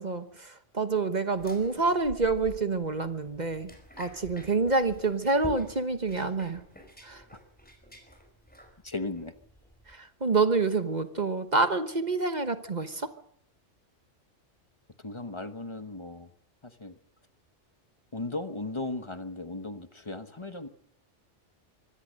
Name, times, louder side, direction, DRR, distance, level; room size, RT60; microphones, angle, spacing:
voice 1, 0.0-6.6 7.0-7.2 9.9-13.1, right 3 dB, 40° right, 10 dB, 1.3 m, -27 dB
sound 1, 1.3-9.9, equal, 5° left, 4.5 m, -48 dB
voice 2, 8.8-9.3 15.0-16.3 16.6-16.9 18.1-20.7, left 2 dB, 25° left, 10 dB, 1.1 m, -36 dB
24.5 x 17.0 x 6.4 m, 0.67 s
omnidirectional pair, 1.3 m